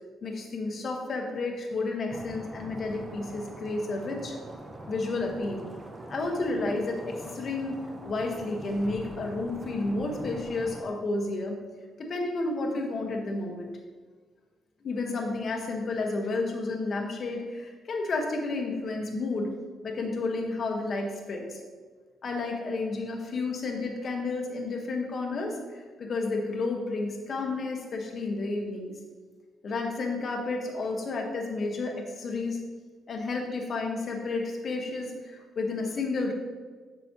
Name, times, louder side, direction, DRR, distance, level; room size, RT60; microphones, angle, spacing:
voice 1, 0.2-4.3 4.9-5.7 6.1-11.6 12.0-13.7 14.8-19.5 19.8-21.6 22.2-28.9 29.6-32.6 33.1-36.3, left 3 dB, 50° left, 1 dB, 1.3 m, -31 dB
sound 1, 2.1-10.9, right 2 dB, 25° right, 0.9 m, -43 dB
8.1 x 6.1 x 3.0 m, 1.5 s
cardioid pair, 90°, 0 cm